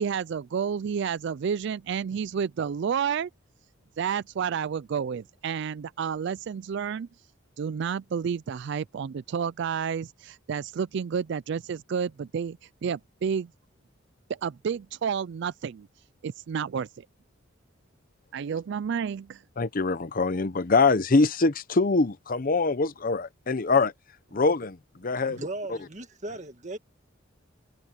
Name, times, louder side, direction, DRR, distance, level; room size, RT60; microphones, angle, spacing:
voice 1, 0.0-3.3 4.0-7.1 7.6-13.5 14.3-15.9 16.2-16.9 18.3-19.4, right 7 dB, 60° right, 0.4 m, -30 dB
voice 2, 19.6-23.9 24.3-25.4, left 3 dB, 45° left, 0.8 m, -24 dB
voice 3, 25.0-26.8, right 2 dB, 35° right, 1.9 m, -38 dB
head